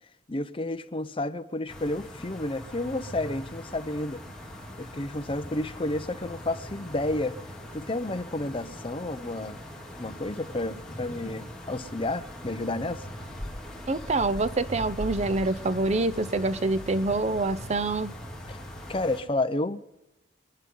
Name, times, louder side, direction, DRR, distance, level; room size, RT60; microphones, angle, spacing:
voice 1, 0.3-4.2 4.8-7.4 7.7-9.6 10.0-13.0 18.5-18.6 18.9-19.9, left 2 dB, 30° left, 0.8 m, -31 dB
sound 1, 1.7-19.2, equal, 5° left, 2.7 m, -41 dB
voice 2, 13.9-18.1, right 2 dB, 40° right, 0.6 m, -26 dB
27.5 x 11.0 x 3.9 m
head